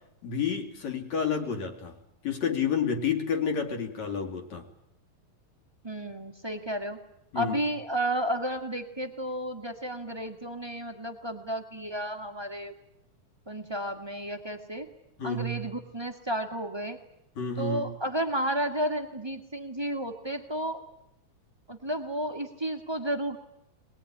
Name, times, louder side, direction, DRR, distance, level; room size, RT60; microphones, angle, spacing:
voice 1, 0.2-2.0 2.2-4.7 7.3-7.6 15.2-15.7 17.4-18.0, left 6 dB, 60° left, 3 dB, 3.7 m, -30 dB
voice 2, 5.8-7.0 7.3-12.7 13.5-14.9 15.2-17.0 17.6-20.9 21.7-23.4, right 1 dB, 20° right, 6 dB, 0.7 m, -32 dB
22.5 x 21.0 x 9.9 m, 0.82 s
omnidirectional pair, 3.7 m